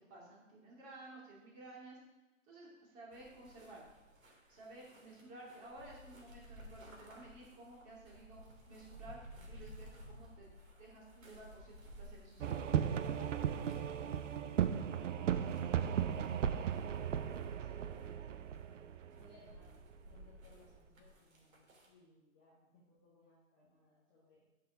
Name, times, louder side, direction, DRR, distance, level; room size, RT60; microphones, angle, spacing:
voice 1, 0.1-2.0 2.5-3.8 4.5-9.2 9.5-10.5 10.8-13.2, right 2 dB, 20° right, -4 dB, 2.6 m, -54 dB
sound 1, 3.1-21.9, equal, 80° right, 3.4 m, -57 dB
sound 2, 12.4-19.9, right 9 dB, 65° right, 0.7 m, -36 dB
voice 2, 15.4-15.8 16.1-18.5 19.1-19.7 20.0-24.4, left 1 dB, 5° left, -9 dB, 0.4 m, -65 dB
9.2 x 6.7 x 5.6 m, 1.1 s
hypercardioid pair, 160°, 40 cm